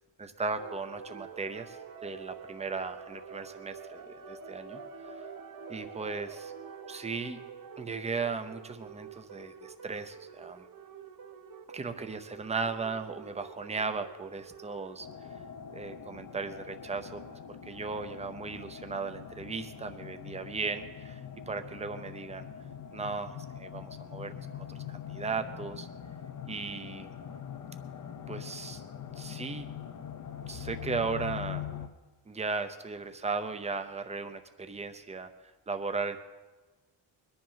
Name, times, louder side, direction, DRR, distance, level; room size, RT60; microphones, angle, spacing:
voice 1, 0.2-5.1 5.7-6.5 6.9-7.4 7.8-10.6 11.7-15.1 15.7-17.4 17.7-21.2 21.5-22.5 22.9-25.9 26.4-27.1 28.3-28.8 29.2-29.7 30.5-31.6 32.3-35.3 35.7-36.2, right 4 dB, 15° right, 8 dB, 0.7 m, -36 dB
sound 1, 0.6-15.0, right 6 dB, 45° right, 1.1 m, -47 dB
sound 2, 15.0-31.9, left 8 dB, 40° left, 0.8 m, -43 dB
21.5 x 10.5 x 5.7 m, 1.2 s
wide cardioid pair, 170°, 45 cm